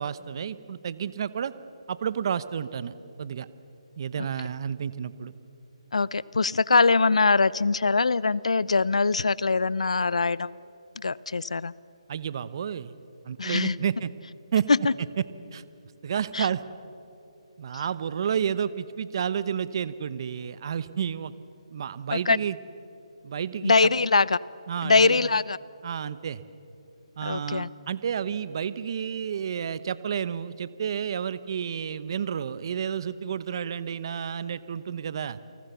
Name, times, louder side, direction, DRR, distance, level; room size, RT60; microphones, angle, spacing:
voice 1, 0.0-1.5 1.9-3.5 4.0-5.3 12.1-12.9 13.2-14.1 14.5-14.7 15.5-15.6 16.0-16.6 17.6-21.3 21.7-22.6 23.2-23.9 24.7-25.3 25.8-26.4 27.2-35.4, right 8 dB, 45° right, 16 dB, 0.9 m, -31 dB
voice 2, 5.9-10.5 11.0-11.7 13.4-13.8 14.7-14.9 16.3-16.5 22.1-22.4 23.6-24.4 24.8-25.6 27.2-27.7, left 4 dB, 80° left, 21 dB, 0.6 m, -22 dB
29.0 x 19.0 x 7.0 m, 2.9 s
hypercardioid pair, 160°, 3 cm